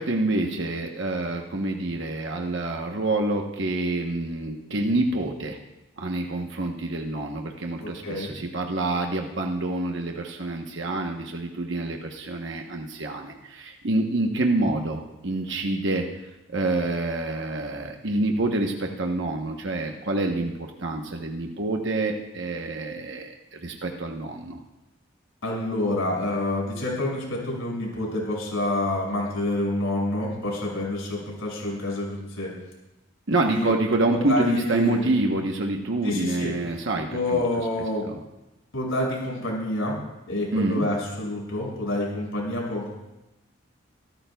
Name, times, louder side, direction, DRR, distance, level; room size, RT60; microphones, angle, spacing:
voice 1, 0.0-5.6 6.0-16.1 16.5-24.6 33.3-37.4 38.1-38.2 40.5-40.9, right 2 dB, 65° right, 2 dB, 1.1 m, -27 dB
voice 2, 7.8-8.4 25.4-32.5 33.3-33.7 34.1-35.0 36.0-36.5 37.1-38.1 38.7-40.0 40.3-42.9, left 1 dB, 90° left, -2 dB, 6.1 m, -28 dB
25.0 x 13.5 x 2.3 m, 0.98 s
head